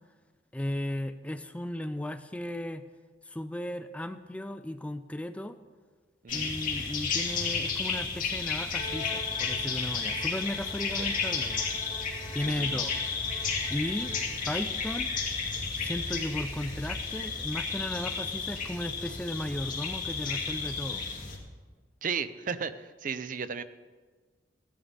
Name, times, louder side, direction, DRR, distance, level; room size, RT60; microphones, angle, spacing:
voice 1, 0.5-2.8 3.3-5.6 6.3-11.7 12.3-13.0 13.7-14.1 14.5-15.1 15.6-21.0, left 1 dB, 5° left, 10 dB, 0.4 m, -35 dB
voice 2, 6.2-6.5 11.0-11.1 12.5-12.8 22.0-23.6, right 6 dB, 50° right, 12 dB, 0.5 m, -34 dB
sound 1, 6.3-21.4, left 5 dB, 50° left, 2.3 m, -32 dB
Bowed string instrument, 8.7-14.4, left 2 dB, 25° left, 1.1 m, -46 dB
16.5 x 11.0 x 3.5 m, 1.4 s
head